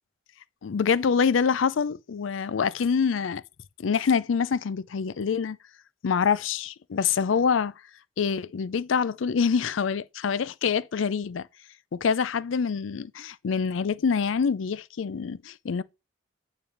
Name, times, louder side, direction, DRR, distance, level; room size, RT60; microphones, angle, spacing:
voice 1, 0.6-3.4 3.8-5.6 6.0-7.7 8.2-11.5 11.9-15.8, left 6 dB, 75° left, 0.4 m, -25 dB
9.1 x 3.4 x 5.6 m
head